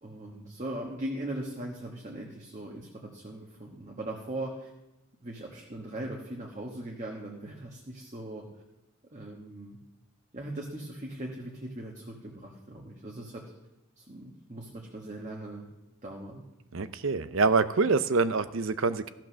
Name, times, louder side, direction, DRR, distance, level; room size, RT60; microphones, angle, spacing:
voice 1, 0.0-4.7 5.2-8.4 9.1-9.8 10.3-13.4 14.0-15.7 16.0-16.4, right 1 dB, 35° right, -1 dB, 1.3 m, -39 dB
voice 2, 16.7-19.1, right 4 dB, 65° right, 13 dB, 0.6 m, -25 dB
14.5 x 6.0 x 6.2 m, 1.0 s
head